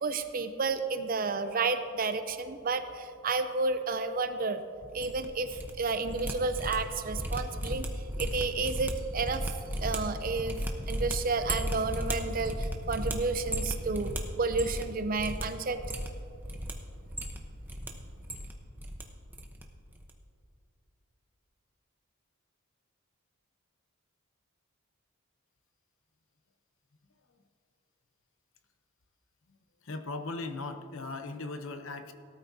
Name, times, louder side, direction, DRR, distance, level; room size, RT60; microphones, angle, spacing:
voice 1, 0.0-4.6 4.9-7.9 8.2-9.5 9.8-10.6 10.9-15.8, right 3 dB, 40° right, 9 dB, 0.6 m, -31 dB
sound 1, 4.8-5.7 6.0-14.9 15.2-15.4 15.8-16.7 17.1-17.9 18.2-19.0 19.3-19.6 19.9-20.1, equal, 10° right, 0.8 m, -35 dB
voice 2, 29.8-32.1, left 3 dB, 60° left, 7 dB, 0.8 m, -38 dB
18.0 x 13.0 x 2.8 m, 2.4 s
head